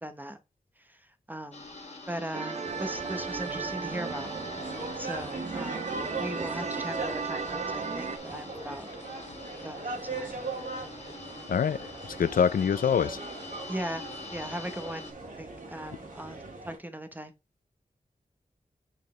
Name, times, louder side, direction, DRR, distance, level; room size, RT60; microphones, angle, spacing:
voice 1, 0.0-0.4 0.8-1.0 1.3-1.7 2.1-4.3 5.0-5.9 6.2-8.9 9.6-10.4 13.7-15.1 15.3-17.3, right 1 dB, 15° right, 1.0 m, -39 dB
sound 1, 1.5-15.1, left 3 dB, 50° left, 1.6 m, -45 dB
sound 2, 2.3-8.2, right 5 dB, 55° right, 0.6 m, -35 dB
sound 3, 2.6-16.8, right 3 dB, 70° right, 2.2 m, -40 dB
voice 2, 11.5-13.2, left 7 dB, 80° left, 0.4 m, -25 dB
7.0 x 4.5 x 3.2 m
wide cardioid pair, 80°, 14 cm